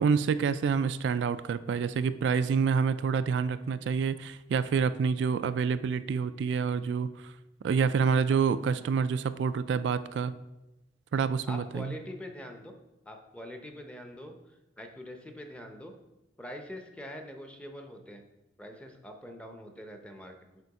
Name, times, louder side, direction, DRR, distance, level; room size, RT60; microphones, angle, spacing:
voice 1, 0.0-7.3 7.6-10.3 11.1-11.9, right 6 dB, 80° right, 13 dB, 0.3 m, -27 dB
voice 2, 11.5-12.7 13.1-15.9 16.4-18.2 18.6-20.4, left 1 dB, 5° left, 4 dB, 0.7 m, -44 dB
6.8 x 4.4 x 4.8 m, 0.97 s
head